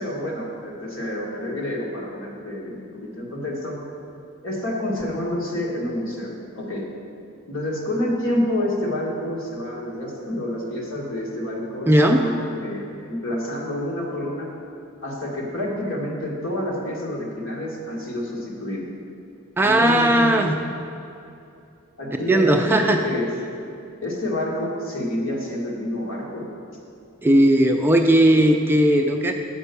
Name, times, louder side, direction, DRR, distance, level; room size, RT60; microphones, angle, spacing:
voice 1, 0.0-3.8 4.4-6.9 7.5-14.5 15.0-18.8 19.6-20.3 22.0-23.3 24.0-26.5, left 1 dB, 65° left, -3 dB, 1.8 m, -28 dB
voice 2, 11.9-12.3 19.6-20.6 22.3-23.0 27.2-29.3, right 1 dB, 10° right, 3 dB, 0.3 m, -17 dB
8.0 x 5.3 x 6.8 m, 2.6 s
head